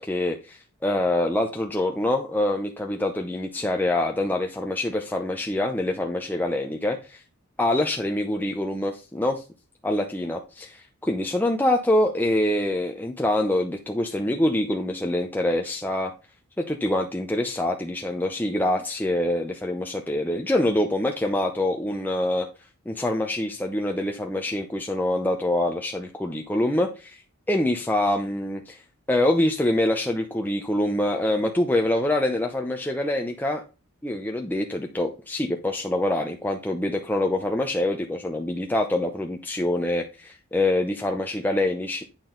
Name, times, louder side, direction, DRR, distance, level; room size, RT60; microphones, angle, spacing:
voice 1, 0.0-7.0 7.6-9.4 9.8-10.7 11.0-16.1 16.6-22.5 22.9-27.2 27.5-28.8 29.1-33.6 34.0-42.0, left 1 dB, 10° left, 2 dB, 0.6 m, -25 dB
8.8 x 6.1 x 3.8 m, 0.31 s
head